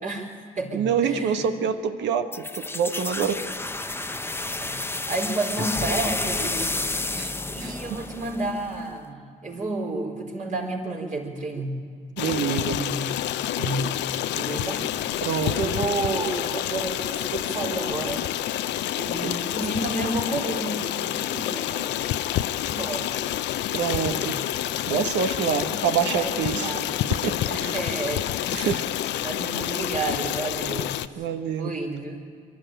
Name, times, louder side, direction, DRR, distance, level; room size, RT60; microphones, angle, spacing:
voice 1, 0.0-1.6 4.6-6.7 7.1-7.2 7.5-11.8 12.5-13.1 13.6-14.0 14.3-14.8 15.4-18.2 18.9-22.0 22.6-23.1 23.9-24.4 26.1-27.1 27.5-28.7 29.2-32.2, right 2 dB, 45° right, -2 dB, 4.1 m, -31 dB
voice 2, 0.7-3.4 7.2-7.3 7.6-7.7 12.2-12.8 15.2-15.5 19.2-19.3 23.7-24.4 24.9-26.7 27.1-27.7 28.5-28.9 31.2-31.7, right 7 dB, 75° right, 8 dB, 1.2 m, -26 dB
sound 1, 2.3-8.9, left 2 dB, 10° left, 0.8 m, -30 dB
Stream, 12.2-31.1, left 13 dB, 75° left, 0.6 m, -28 dB
22.5 x 13.0 x 9.0 m, 2.1 s
supercardioid pair, 65°, 19 cm